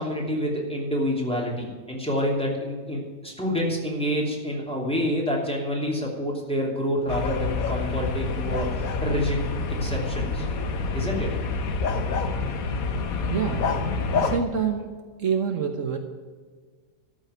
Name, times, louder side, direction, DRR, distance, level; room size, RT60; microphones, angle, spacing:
voice 1, 0.0-8.7 9.0-9.4 9.8-10.4 10.9-11.3, equal, 5° left, -3 dB, 2.9 m, -27 dB
sound 1, 7.1-14.4, left 4 dB, 80° left, 1.4 m, -27 dB
voice 2, 13.2-13.7 14.1-14.9 15.2-16.0, right 6 dB, 65° right, 5 dB, 1.4 m, -26 dB
13.0 x 6.2 x 8.2 m, 1.5 s
omnidirectional pair, 1.5 m